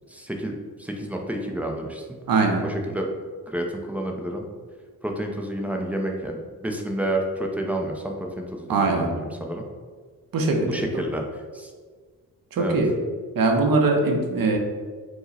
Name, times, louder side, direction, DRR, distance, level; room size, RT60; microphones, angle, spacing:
voice 1, 0.1-0.5 0.8-2.1 2.6-3.1 3.5-4.4 5.0-9.6 10.6-11.2 11.5-11.7 12.6-12.8, right 1 dB, 5° right, 1 dB, 0.4 m, -29 dB
voice 2, 2.3-2.6 8.7-9.1 10.3-10.8 12.5-12.9 13.4-14.6, right 3 dB, 65° right, 2 dB, 0.7 m, -21 dB
4.7 x 2.0 x 4.0 m, 1.5 s
wide cardioid pair, 130°, 38 cm